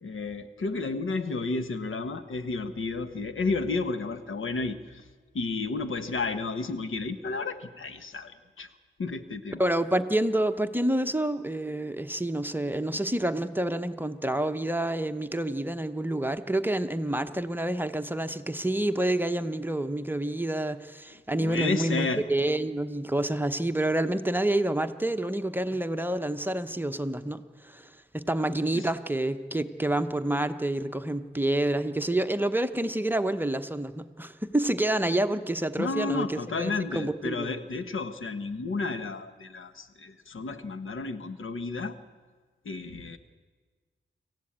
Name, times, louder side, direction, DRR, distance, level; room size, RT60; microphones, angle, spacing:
voice 1, 0.0-5.1 5.3-8.7 9.0-9.6 21.4-22.3 28.7-28.9 35.8-42.0 42.6-43.2, left 3 dB, 85° left, 9 dB, 1.3 m, -32 dB
voice 2, 9.6-37.5, right 1 dB, 10° right, 8 dB, 0.9 m, -28 dB
26.0 x 15.0 x 8.7 m, 1.5 s
wide cardioid pair, 105°, 20 cm